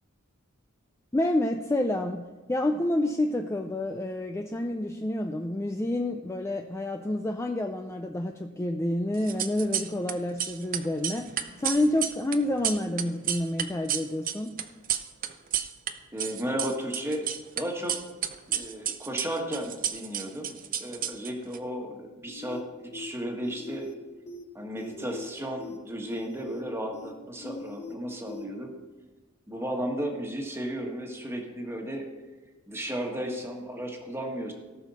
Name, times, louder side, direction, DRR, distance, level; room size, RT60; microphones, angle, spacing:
voice 1, 1.1-2.2 2.5-11.3 11.6-14.5, left 1 dB, 15° left, 4 dB, 0.4 m, -28 dB
sound 1, 9.2-10.1 10.4-15.9 16.2-17.6 17.9-21.6, right 10 dB, 40° right, 0.6 m, -31 dB
voice 2, 16.1-17.3 17.5-18.0 18.5-23.9 24.5-28.7 29.5-32.0 32.7-34.5, equal, 10° right, 1 dB, 1.5 m, -34 dB
sound 2, 22.3-22.6 22.9-23.1 23.4-23.9 24.3-24.4 24.8-25.3 25.6-25.8 26.1-26.6 26.9-27.1 27.4-27.9 28.3-28.4, left 3 dB, 55° left, 2.4 m, -41 dB
18.0 x 6.3 x 4.2 m, 1.3 s
head